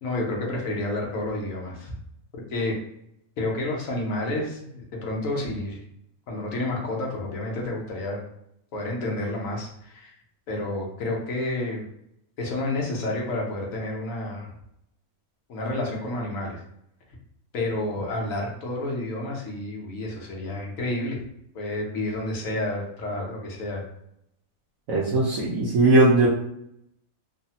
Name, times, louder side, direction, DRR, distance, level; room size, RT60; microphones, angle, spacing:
voice 1, 0.0-1.9 2.3-2.7 3.4-5.8 6.3-8.2 8.7-10.1 10.5-11.8 12.4-14.5 15.5-16.6 17.5-21.2 21.5-23.9, left 2 dB, 70° left, -1 dB, 1.1 m, -30 dB
voice 2, 24.9-26.3, right 2 dB, 70° right, -6 dB, 1.0 m, -19 dB
3.1 x 2.0 x 2.8 m, 0.76 s
omnidirectional pair, 1.5 m